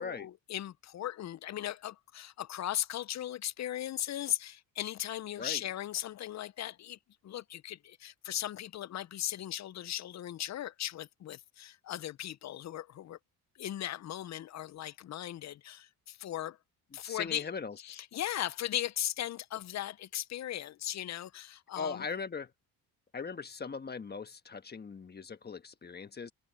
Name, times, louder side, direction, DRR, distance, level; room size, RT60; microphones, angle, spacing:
voice 1, 0.0-7.0 7.2-13.2 13.6-16.6 16.9-17.4 17.8-22.0, left 12 dB, 45° left, 0.5 m, -38 dB
voice 2, 17.0-17.8 21.7-22.5 23.1-26.3, left 5 dB, 25° left, 1.3 m, -39 dB
cardioid pair, 115°, 39 cm